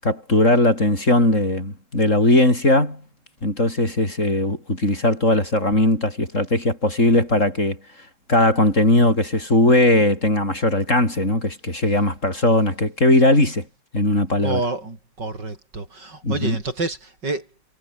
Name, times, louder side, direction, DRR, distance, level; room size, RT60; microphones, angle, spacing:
voice 1, 0.0-3.0 3.4-7.8 8.3-13.6 13.9-14.6 16.2-16.6, left 1 dB, 40° left, 7.6 m, -19 dB
voice 2, 14.4-17.5, right 3 dB, 70° right, 6.0 m, -28 dB
omnidirectional pair, 2.0 m